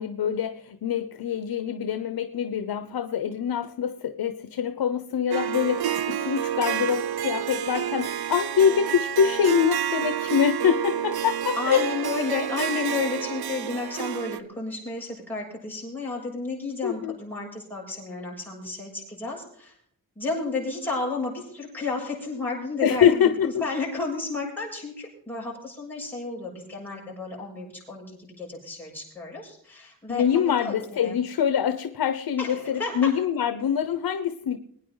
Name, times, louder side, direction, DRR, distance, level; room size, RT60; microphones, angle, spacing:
voice 1, 0.0-11.9 16.8-17.1 22.8-23.5 30.1-34.6, left 8 dB, 80° left, 10 dB, 1.0 m, -24 dB
Harp, 5.3-14.4, right 10 dB, 80° right, 0.8 m, -29 dB
voice 2, 11.6-19.7 20.2-31.2 32.4-33.1, left 3 dB, 5° left, -5 dB, 7.5 m, -32 dB
23.0 x 9.7 x 3.9 m, 0.68 s
wide cardioid pair, 105°, 37 cm